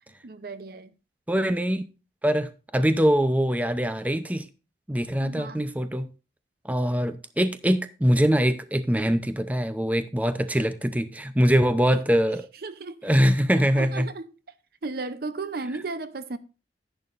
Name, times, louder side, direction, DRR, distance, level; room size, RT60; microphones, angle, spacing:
voice 1, 0.2-0.9 5.2-5.6 11.5-11.6 11.9-12.0 12.6-13.1 13.5-14.3 14.8-16.4, right 3 dB, 60° right, 0.7 m, -35 dB
voice 2, 1.3-1.8 2.2-4.5 4.9-6.1 6.6-12.4 13.0-14.1, equal, 10° right, 0.6 m, -23 dB
10.5 x 10.5 x 2.5 m
head